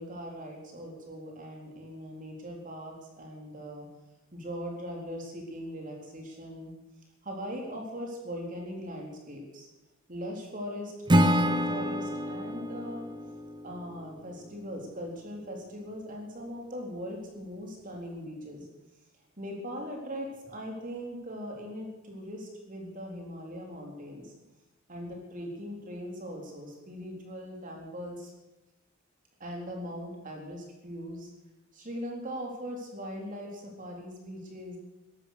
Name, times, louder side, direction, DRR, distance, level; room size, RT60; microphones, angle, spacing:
voice 1, 0.0-3.9 4.3-6.7 7.2-9.7 10.1-13.1 13.6-18.7 19.4-24.3 24.9-28.3 29.4-31.3 31.7-34.8, equal, 40° right, 0 dB, 3.8 m, -40 dB
Acoustic guitar / Strum, 11.1-14.3, equal, 20° right, 0.9 m, -27 dB
16.5 x 13.5 x 6.7 m, 1.0 s
head